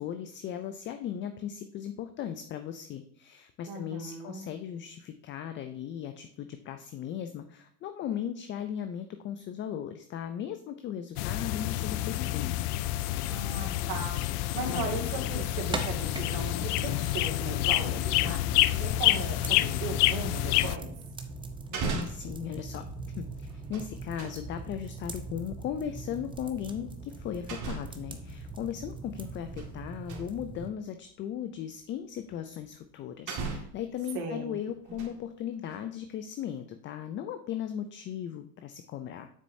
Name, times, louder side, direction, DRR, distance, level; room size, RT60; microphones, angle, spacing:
voice 1, 0.0-12.5 21.7-22.9 23.2-39.3, left 9 dB, 25° left, 8 dB, 0.4 m, -37 dB
voice 2, 3.7-4.5 13.3-14.2 14.5-18.4 18.8-20.9 34.1-34.6, right 4 dB, 75° right, 0 dB, 2.3 m, -37 dB
sound 1, 11.2-20.8, left 16 dB, 75° left, 0.5 m, -28 dB
sound 2, 15.1-30.7, right 3 dB, 10° right, 0.7 m, -41 dB
sound 3, 21.6-22.4 23.5-24.4 26.0-26.2 27.5-28.1 29.2-29.7 30.1-30.3 31.2-31.3 32.6-32.7 33.3-33.9 34.7-35.3 35.6-35.8, right 4 dB, 40° right, 2.0 m, -37 dB
7.7 x 6.1 x 2.7 m, 0.65 s
supercardioid pair, 120°, 46 cm